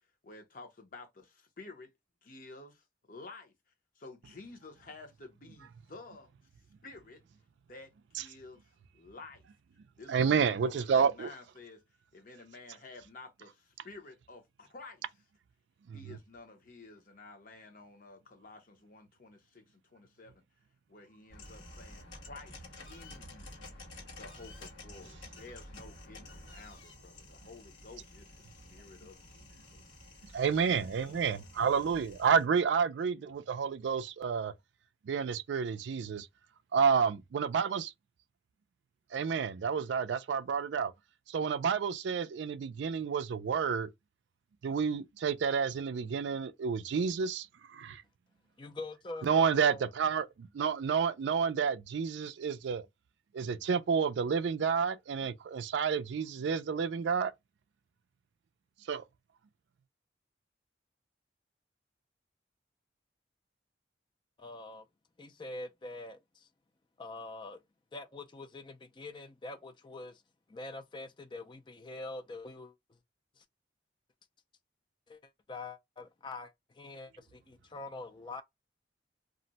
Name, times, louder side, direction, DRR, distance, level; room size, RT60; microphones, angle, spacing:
voice 1, 0.2-1.9 2.2-3.5 4.0-6.3 6.8-7.2 7.7-9.5 10.0-11.8 12.1-15.0 15.9-20.4 20.9-23.6 24.1-30.1 30.5-30.7 31.1-31.4, left 3 dB, 45° left, 0.8 m, -52 dB
voice 2, 10.1-11.3 15.9-16.0 30.3-34.5 35.1-36.3 36.7-37.9 39.1-40.9 41.3-43.9 44.6-48.0 49.2-52.9 53.3-57.3 58.9-59.0, right 6 dB, 75° right, 0.3 m, -30 dB
sound 1, 21.3-32.4, left 1 dB, 85° left, 1.2 m, -51 dB
voice 3, 48.6-49.9 64.4-64.9 65.2-66.5 67.0-67.6 67.9-70.2 70.5-73.0 73.4-73.5 75.1-78.4, left 2 dB, 25° left, 0.4 m, -45 dB
2.5 x 2.1 x 3.9 m
head